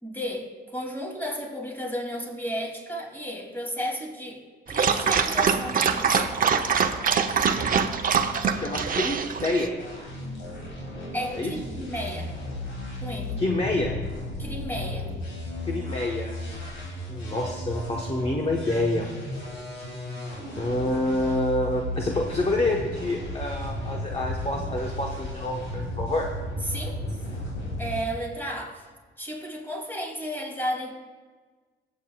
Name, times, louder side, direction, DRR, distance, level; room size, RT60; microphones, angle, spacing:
voice 1, 0.0-4.4 4.7-6.3 11.1-12.4 13.0-13.4 14.4-15.1 26.7-27.0 27.8-28.8 29.2-30.9, equal, 10° left, 0 dB, 2.8 m, -33 dB
Dog, 4.7-9.7, right 6 dB, 45° right, 0.8 m, -24 dB
voice 2, 8.4-9.7 11.3-11.5 13.4-14.0 15.6-16.6 17.1-19.1 20.6-26.3, left 1 dB, 30° left, 0 dB, 1.1 m, -27 dB
sound 1, 9.8-28.0, left 1 dB, 85° left, 3.9 m, -34 dB
23.0 x 8.2 x 2.4 m, 1.4 s
cardioid pair, 90°, 20 cm